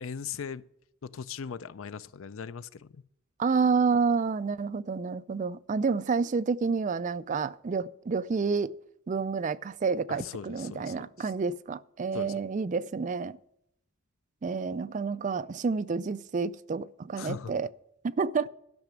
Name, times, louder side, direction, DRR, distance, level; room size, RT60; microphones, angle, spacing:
voice 1, 0.0-0.6 1.0-3.0 10.1-11.3 12.1-12.4 17.2-17.5, left 6 dB, 70° left, 0.5 m, -39 dB
voice 2, 3.4-8.7 9.1-13.4 14.4-17.7 18.0-18.5, right 5 dB, 35° right, 0.3 m, -29 dB
12.0 x 5.9 x 7.9 m
head